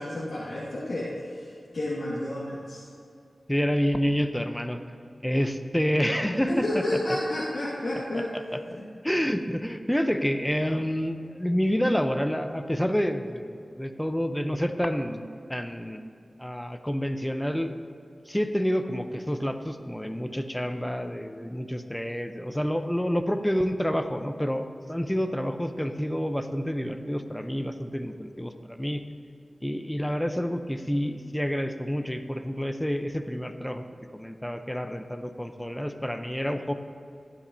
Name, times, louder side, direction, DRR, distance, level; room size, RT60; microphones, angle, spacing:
voice 1, 0.0-2.8 6.5-8.3 8.7-8.8, left 1 dB, 85° left, -8 dB, 1.7 m, -31 dB
voice 2, 3.5-4.8 5.2-6.8 8.5-8.6 9.0-16.0 16.4-17.7 18.3-29.0 29.6-33.8 34.1-36.7, equal, 10° left, 8 dB, 0.6 m, -28 dB
11.5 x 9.8 x 2.7 m, 2.5 s
cardioid pair, 50°, 0 cm